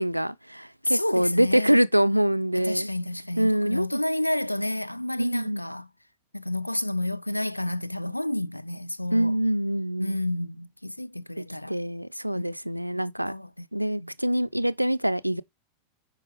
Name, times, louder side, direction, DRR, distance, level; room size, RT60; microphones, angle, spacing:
voice 1, 0.0-2.9 3.4-4.0 5.2-5.6 9.1-10.2 11.7-13.3 13.7-15.4, equal, 90° right, 0.5 m, -25 dB
voice 2, 0.8-1.8 2.5-5.9 6.3-9.4 10.0-11.8 12.3-12.5 12.9-13.7 14.0-14.1, left 1 dB, 85° left, 0.4 m, -30 dB
9.6 x 4.6 x 3.5 m
figure-of-eight pair, 90°, 0 cm